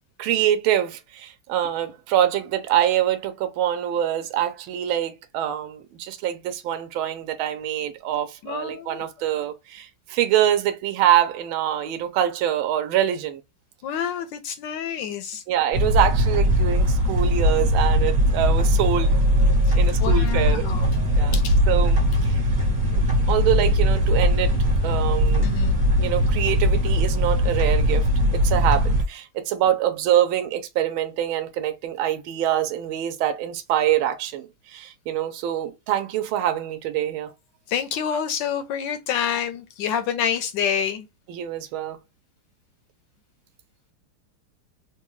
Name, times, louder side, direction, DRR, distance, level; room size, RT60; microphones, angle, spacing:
voice 1, 0.2-13.4 15.5-21.3 21.7-22.0 22.3-22.4 22.9-24.5 24.8-25.5 26.0-28.0 28.3-37.3 41.3-42.0, right 11 dB, 75° right, 1.4 m, -25 dB
voice 2, 8.4-9.1 13.8-15.4 19.7-21.0 21.3-21.6 25.4-25.8 37.7-41.1, left 8 dB, 75° left, 1.1 m, -28 dB
sound 1, 15.7-29.0, equal, 25° right, 1.1 m, -20 dB
3.8 x 2.2 x 3.0 m
omnidirectional pair, 2.3 m